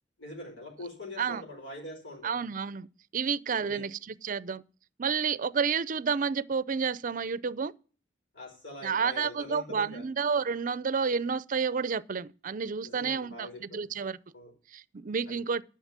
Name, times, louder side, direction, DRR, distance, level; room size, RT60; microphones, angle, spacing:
voice 1, 0.2-2.4 3.6-3.8 8.3-10.1 12.8-13.9 14.3-14.5 15.3-15.4, left 1 dB, 85° left, 4.7 m, -43 dB
voice 2, 2.2-2.9 3.1-4.6 5.0-7.7 8.8-14.2 14.7-15.6, right 6 dB, 45° right, 0.5 m, -30 dB
12.0 x 5.8 x 7.3 m
head